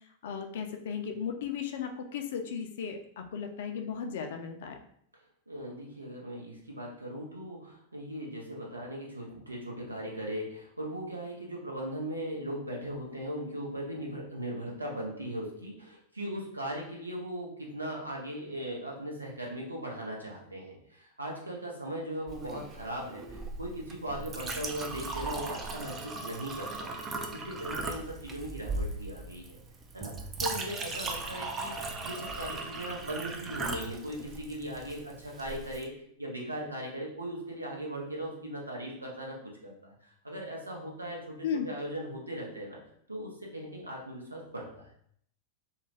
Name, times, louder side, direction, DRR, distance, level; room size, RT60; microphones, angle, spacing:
voice 1, 0.2-4.8 41.4-41.7, left 7 dB, 55° left, 5 dB, 0.4 m, -35 dB
voice 2, 5.5-27.0 27.3-29.6 29.9-31.7 32.0-35.9 36.2-39.9 40.2-42.8 43.1-44.8, right 1 dB, 80° right, -2 dB, 0.7 m, -38 dB
Chink clink, 22.3-35.9, right 3 dB, 25° right, 0.4 m, -38 dB
2.3 x 2.2 x 3.2 m, 0.66 s
figure-of-eight pair, 90°, 0 cm